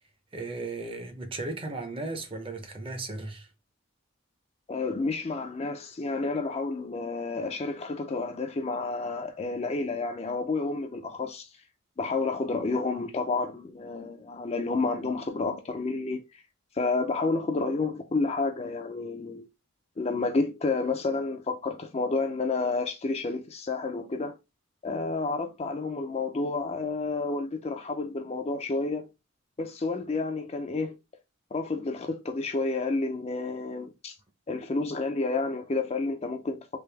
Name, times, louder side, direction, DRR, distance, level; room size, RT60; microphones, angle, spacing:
voice 1, 0.3-3.5, right 2 dB, 25° right, 0.6 m, -36 dB
voice 2, 4.7-11.5 12.0-16.4 16.7-19.5 20.0-24.3 24.8-29.1 29.6-30.9 31.5-34.2 34.5-36.6, left 3 dB, 30° left, 0.4 m, -30 dB
3.4 x 2.6 x 3.2 m
head